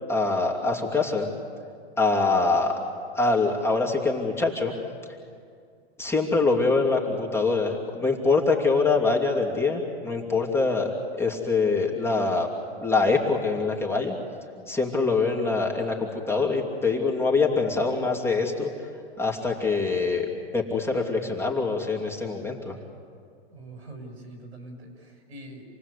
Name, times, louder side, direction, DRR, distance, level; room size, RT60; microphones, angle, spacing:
voice 1, 0.1-1.3 2.0-2.7 3.1-4.7 6.0-10.9 11.2-12.5 12.8-14.1 14.7-18.7 19.2-20.3 20.5-22.8, left 3 dB, 10° left, -1 dB, 2.8 m, -24 dB
voice 2, 23.5-25.6, right 1 dB, 85° right, 4 dB, 6.3 m, -43 dB
28.0 x 19.0 x 8.3 m, 2.2 s
hypercardioid pair, 130°, 32 cm